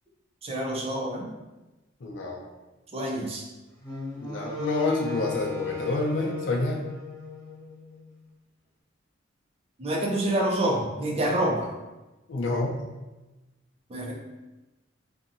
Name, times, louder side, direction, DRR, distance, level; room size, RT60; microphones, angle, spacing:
voice 1, 0.4-1.3 2.9-3.4 9.8-11.7 13.9-14.1, right 1 dB, 30° right, -1 dB, 0.4 m, -27 dB
voice 2, 2.0-2.4 4.2-6.8 12.3-12.8, left 2 dB, 75° left, 0 dB, 0.5 m, -28 dB
Wind instrument woodwind instrument, 3.8-8.0, left 5 dB, 15° left, 0.9 m, -36 dB
2.7 x 2.5 x 2.6 m, 1.1 s
head